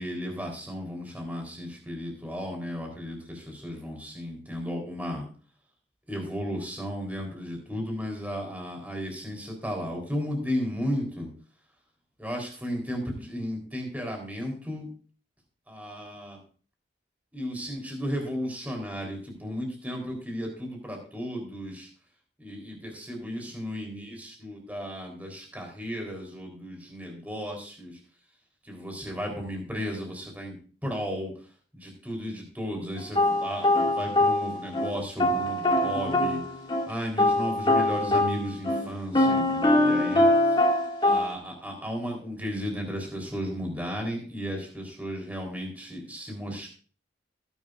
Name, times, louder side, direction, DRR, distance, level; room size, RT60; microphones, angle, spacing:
voice 1, 0.0-5.3 6.1-11.3 12.2-14.9 15.7-16.4 17.3-21.9 22.4-28.0 28.6-30.6 30.8-31.3 31.7-36.4 36.9-40.3 41.0-46.7, equal, 10° right, 1 dB, 4.0 m, -34 dB
sound 1, 33.1-34.9 35.2-36.9 37.2-41.3, left 1 dB, 25° left, 2.4 m, -23 dB
19.0 x 11.0 x 2.6 m, 0.40 s
head